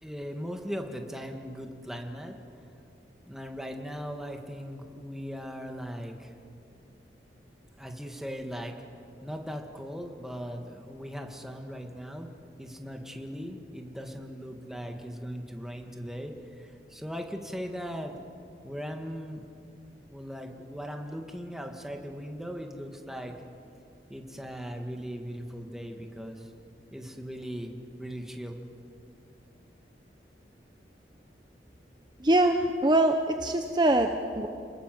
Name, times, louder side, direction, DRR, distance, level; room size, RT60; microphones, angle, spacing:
voice 1, 0.0-2.3 3.3-6.3 7.8-8.7 9.2-12.3 12.6-16.3 16.6-18.2 18.6-19.5 20.1-23.3 24.1-26.4 26.9-27.7 28.0-28.6, equal, ahead, 3 dB, 1.9 m, -38 dB
voice 2, 32.2-34.5, right 1 dB, 25° right, 5 dB, 0.9 m, -23 dB
29.5 x 20.0 x 7.8 m, 2.5 s
head